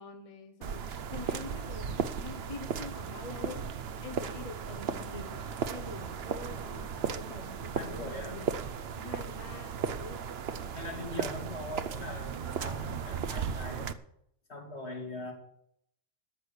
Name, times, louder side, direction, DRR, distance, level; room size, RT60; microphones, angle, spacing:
voice 1, 0.0-3.7 4.0-8.5 8.9-10.2, left 3 dB, 30° left, 5 dB, 1.2 m, -45 dB
sound 1, 0.6-13.9, right 7 dB, 60° right, 0.9 m, -36 dB
voice 2, 7.7-8.4 10.7-13.9 14.5-15.3, left 2 dB, 65° left, 0 dB, 3.2 m, -41 dB
13.0 x 6.4 x 8.2 m, 0.73 s
omnidirectional pair, 1.2 m